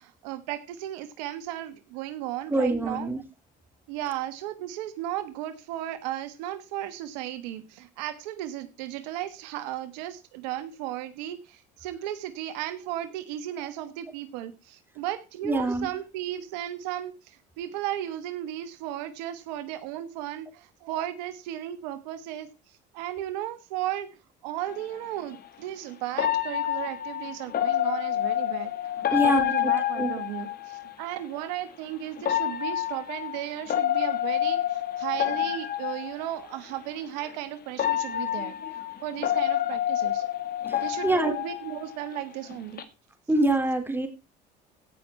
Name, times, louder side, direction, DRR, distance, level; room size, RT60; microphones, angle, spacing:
voice 1, 0.0-3.1 3.9-22.5 22.9-24.1 24.4-28.7 29.1-40.2 40.8-42.9, right 12 dB, 85° right, 11 dB, 1.3 m, -35 dB
voice 2, 2.5-3.2 15.4-15.9 29.1-30.1 40.7-41.3 43.3-44.1, right 1 dB, 10° right, 6 dB, 3.5 m, -25 dB
sound 1, 24.7-24.8 26.2-30.9 32.2-36.4 37.2-37.3 37.8-42.2 42.5-42.8, left 12 dB, 45° left, 1.9 m, -28 dB
16.5 x 6.1 x 4.4 m, 0.28 s
supercardioid pair, 85°, 21 cm